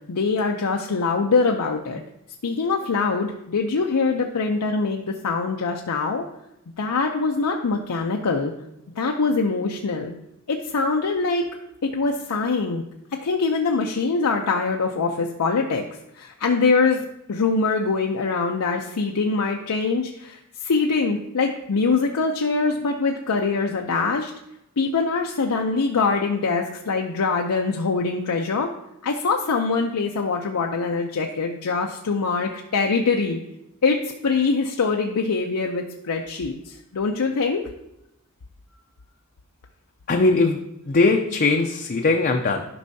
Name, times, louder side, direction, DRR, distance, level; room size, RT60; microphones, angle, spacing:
voice 1, 0.1-2.0 2.4-6.2 6.8-8.5 9.0-10.1 10.5-11.5 11.8-12.8 13.1-15.8 16.2-24.3 24.8-28.7 29.0-33.4 33.8-37.6, left 4 dB, 85° left, 2 dB, 0.6 m, -23 dB
voice 2, 40.1-40.6 40.9-42.6, left 3 dB, 40° left, 3 dB, 0.5 m, -20 dB
11.5 x 5.4 x 2.7 m, 0.86 s
head